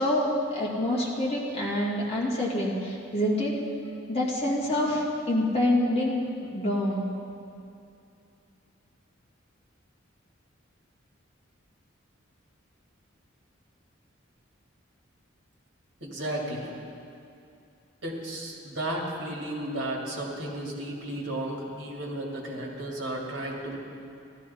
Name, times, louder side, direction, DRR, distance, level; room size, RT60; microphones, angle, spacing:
voice 1, 0.0-3.6 4.1-6.3 6.5-7.1, left 1 dB, 30° left, -5 dB, 2.0 m, -26 dB
voice 2, 16.0-16.8 18.0-23.8, right 1 dB, 60° right, -2 dB, 2.2 m, -33 dB
15.0 x 12.5 x 4.2 m, 2.7 s
head